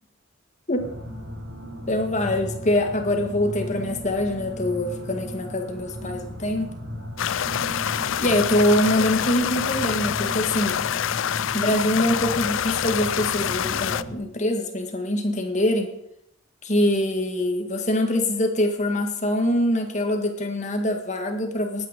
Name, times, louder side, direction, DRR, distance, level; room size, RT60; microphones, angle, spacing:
sound 1, 0.8-14.2, equal, 70° right, 4.5 m, -36 dB
voice 1, 1.9-6.8 8.2-10.8 11.5-15.9 16.6-21.9, left 1 dB, 35° left, 4 dB, 1.9 m, -24 dB
sound 2, 7.2-14.0, left 9 dB, 70° left, 0.4 m, -26 dB
18.0 x 9.4 x 5.2 m, 0.77 s
head